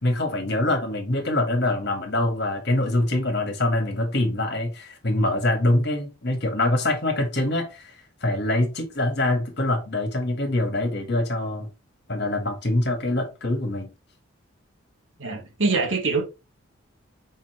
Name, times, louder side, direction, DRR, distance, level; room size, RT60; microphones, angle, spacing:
voice 1, 0.0-11.7 12.1-13.9, left 1 dB, 50° left, 1.9 m, -24 dB
voice 2, 15.2-16.2, right 3 dB, 70° right, 2.2 m, -24 dB
5.8 x 5.4 x 3.3 m
head